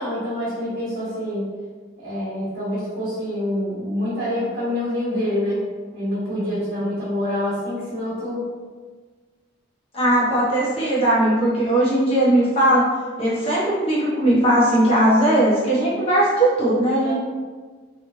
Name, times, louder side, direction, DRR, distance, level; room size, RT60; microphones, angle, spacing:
voice 1, 0.0-1.5 2.0-5.7 5.9-8.5 17.0-17.1, left 1 dB, 55° right, -11 dB, 1.2 m, -26 dB
voice 2, 9.9-12.9 13.2-17.1, right 1 dB, 25° left, -8 dB, 0.9 m, -18 dB
3.0 x 2.5 x 2.6 m, 1.5 s
head